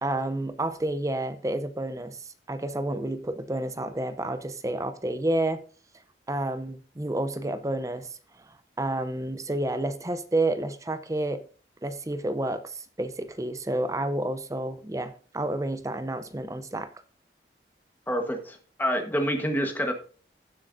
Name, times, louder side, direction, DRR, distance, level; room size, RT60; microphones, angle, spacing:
voice 1, 0.0-5.6 6.3-8.1 8.5-11.4 11.8-16.9, right 1 dB, 20° right, 0.6 m, -30 dB
voice 2, 18.1-19.9, equal, 10° left, 1.3 m, -27 dB
15.5 x 7.5 x 2.6 m
head